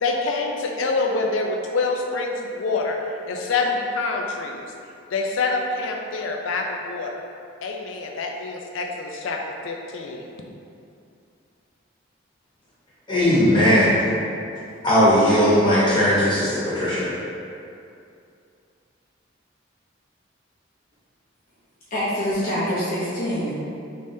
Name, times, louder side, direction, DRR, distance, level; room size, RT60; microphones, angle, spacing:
voice 1, 0.0-3.0 3.3-4.6 5.1-7.2 7.6-9.4 9.6-10.2, left 3 dB, 75° left, 1 dB, 0.4 m, -26 dB
voice 2, 13.1-14.0 14.8-17.1, equal, 25° left, -10 dB, 1.0 m, -18 dB
voice 3, 21.9-23.5, equal, 45° left, -10 dB, 0.7 m, -25 dB
3.4 x 3.2 x 2.6 m, 2.6 s
head